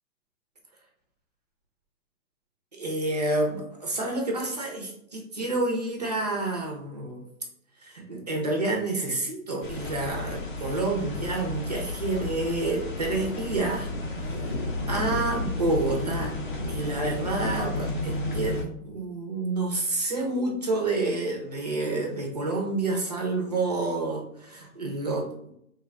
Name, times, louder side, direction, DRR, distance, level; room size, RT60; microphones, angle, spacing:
voice 1, 2.7-7.2 7.8-13.9 14.2-14.6 14.9-16.4 16.7-18.6 18.8-25.3, right 2 dB, 30° right, 0 dB, 0.5 m, -29 dB
sound 1, 9.6-18.6, left 2 dB, 40° left, 0.6 m, -32 dB
3.2 x 2.2 x 3.5 m, 0.73 s
hypercardioid pair, 170°, 41 cm